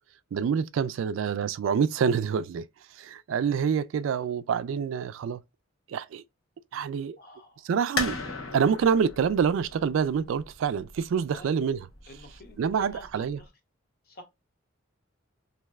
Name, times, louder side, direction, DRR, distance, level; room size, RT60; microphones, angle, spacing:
voice 1, 0.3-2.7 2.9-5.4 5.9-6.2 6.7-7.2 7.6-8.2 8.5-11.8 12.6-13.4, right 6 dB, 70° right, 0.3 m, -26 dB
voice 2, 7.2-7.7 11.3-11.7 12.1-13.5 14.0-14.2, left 2 dB, 50° left, 0.8 m, -49 dB
sound 1, 8.0-13.4, left 3 dB, 80° left, 1.0 m, -37 dB
3.1 x 2.6 x 2.3 m
head